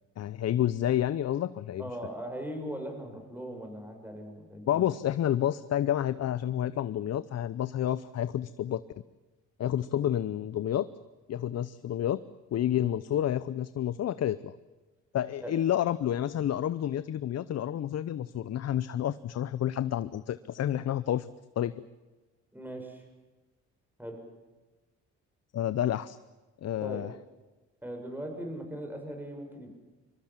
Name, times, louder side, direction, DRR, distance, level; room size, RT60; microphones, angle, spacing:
voice 1, 0.2-1.8 4.7-8.8 9.6-10.9 11.3-12.2 12.5-14.5 15.1-21.3 21.6-21.7 25.5-26.2 26.6-27.1, left 11 dB, 60° left, 15 dB, 0.8 m, -29 dB
voice 2, 1.8-4.8 15.4-15.5 22.5-23.0 24.0-24.2 26.8-27.1 27.8-29.7, right 1 dB, 5° right, 4 dB, 6.6 m, -39 dB
24.5 x 23.5 x 7.5 m, 1.2 s
cardioid pair, 90°, 30 cm